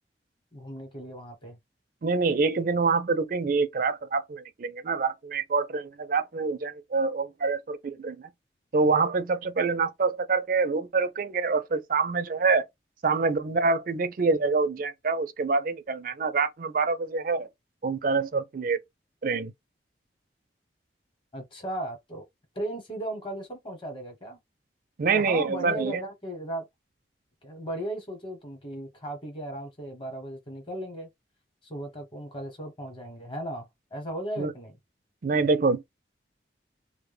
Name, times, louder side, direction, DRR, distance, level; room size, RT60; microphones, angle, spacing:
voice 1, 0.5-1.6 21.3-22.2 22.5-24.4 25.1-26.7 27.4-31.1 31.6-34.7, right 1 dB, 30° left, 0.9 m, -36 dB
voice 2, 2.0-8.3 8.7-12.6 13.0-17.5 17.8-18.8 19.2-19.5 25.0-26.0 34.4-34.5 35.2-35.8, right 4 dB, 50° right, 0.4 m, -26 dB
2.1 x 2.0 x 3.2 m
head